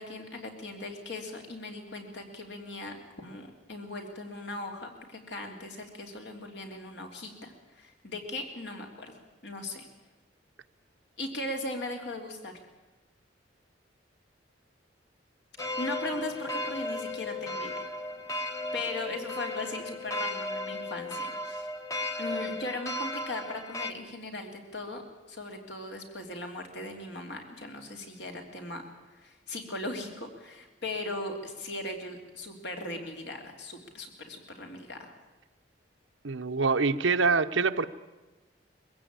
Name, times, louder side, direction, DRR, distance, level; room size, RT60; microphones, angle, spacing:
voice 1, 0.0-9.1 9.4-9.8 11.2-12.5 15.6-17.8 18.7-21.7 22.2-25.0 25.3-28.8 29.2-35.1, left 2 dB, 65° left, 3 dB, 3.3 m, -38 dB
sound 1, 15.6-23.9, left 1 dB, 15° left, 1.0 m, -35 dB
voice 2, 36.2-37.8, right 4 dB, 90° right, 10 dB, 0.9 m, -25 dB
22.0 x 15.5 x 8.9 m, 1.2 s
head